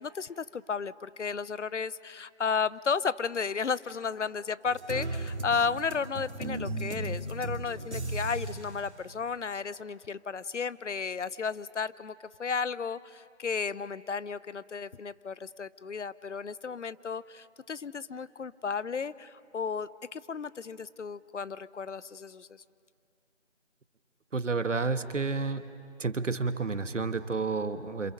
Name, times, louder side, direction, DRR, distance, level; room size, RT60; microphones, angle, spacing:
voice 1, 0.0-12.1 12.4-22.6, left 5 dB, 80° left, 19 dB, 0.7 m, -33 dB
sound 1, 4.7-8.7, right 2 dB, 65° right, 2.5 m, -36 dB
voice 2, 24.3-25.6 26.0-28.1, right 4 dB, 85° right, 11 dB, 1.3 m, -30 dB
28.5 x 27.0 x 5.2 m, 2.5 s
figure-of-eight pair, 180°, 36 cm